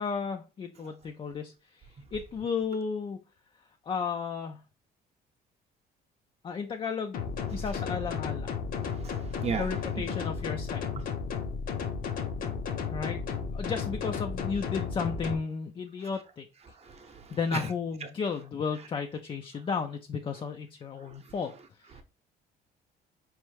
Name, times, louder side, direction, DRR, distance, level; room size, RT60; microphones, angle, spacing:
voice 1, 0.0-3.2 3.5-4.6 6.4-8.6 9.5-10.8 12.9-13.2 13.5-22.0, left 5 dB, 30° left, 0.4 m, -34 dB
sound 1, 7.1-15.3, left 6 dB, 60° left, 0.7 m, -33 dB
voice 2, 8.8-10.2 16.7-17.7 18.0-18.1 21.0-21.3 22.0-22.1, right 5 dB, 40° right, 0.8 m, -37 dB
4.4 x 3.1 x 3.2 m
cardioid pair, 110°, 17 cm